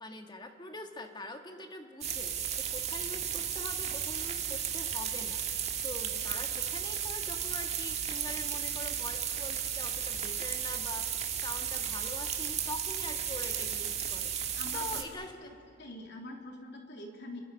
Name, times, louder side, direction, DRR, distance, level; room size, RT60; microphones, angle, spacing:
voice 1, 0.0-14.3 14.7-15.5, left 2 dB, 20° left, 5 dB, 1.7 m, -44 dB
sound 1, 2.0-15.0, right 8 dB, 35° right, 1.8 m, -34 dB
voice 2, 14.6-15.5 15.8-17.4, left 1 dB, 60° left, 1 dB, 3.4 m, -45 dB
29.0 x 23.5 x 5.9 m, 2.4 s
head